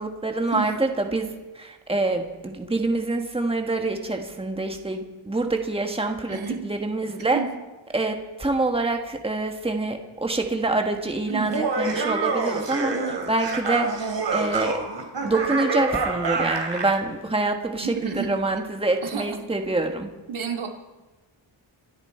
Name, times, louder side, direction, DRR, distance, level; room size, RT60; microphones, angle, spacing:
voice 1, 0.0-6.4 6.6-7.4 7.9-12.9 13.3-14.8 15.2-20.1, right 2 dB, 10° right, 4 dB, 1.6 m, -26 dB
voice 2, 6.3-6.6 7.3-7.5 11.3-11.5 12.9-13.2 17.8-18.3 19.0-19.4 20.3-20.7, right 7 dB, 80° right, 2 dB, 2.5 m, -30 dB
Laughter, 11.4-17.0, right 4 dB, 60° right, 2.8 m, -27 dB
27.5 x 10.5 x 4.5 m, 1.1 s
wide cardioid pair, 110°, 47 cm